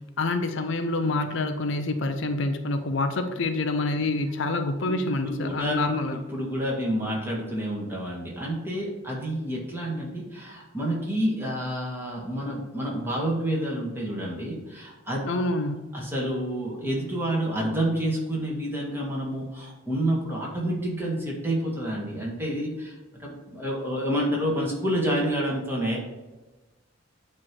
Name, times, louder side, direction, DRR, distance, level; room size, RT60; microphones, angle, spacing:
voice 1, 0.2-6.2 15.3-15.8, left 2 dB, 65° left, 7 dB, 0.6 m, -27 dB
voice 2, 5.2-5.8 6.3-15.2 15.9-26.0, equal, 10° right, -3 dB, 1.7 m, -29 dB
8.8 x 3.2 x 5.9 m, 1.1 s
head